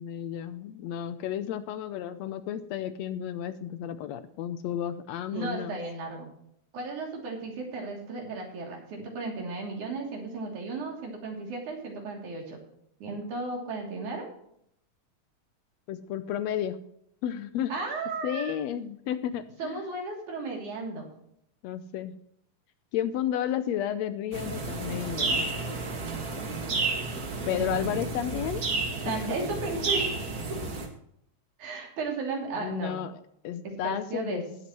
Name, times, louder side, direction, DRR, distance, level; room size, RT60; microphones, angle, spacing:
voice 1, 0.0-5.8 15.9-16.8 17.2-17.7 18.2-19.8 21.6-22.1 22.9-25.5 27.5-28.6 29.1-29.4 32.6-34.6, left 10 dB, 75° left, 12 dB, 1.8 m, -32 dB
voice 2, 5.3-6.3 6.7-12.6 13.0-14.3 17.7-18.5 19.6-21.1 27.5-28.3 29.0-30.3 31.6-33.0 33.8-34.4, right 3 dB, 85° right, 0 dB, 4.5 m, -35 dB
sound 1, 24.3-30.9, right 3 dB, 35° right, 1.8 m, -31 dB
18.5 x 8.4 x 3.1 m, 0.72 s
omnidirectional pair, 3.4 m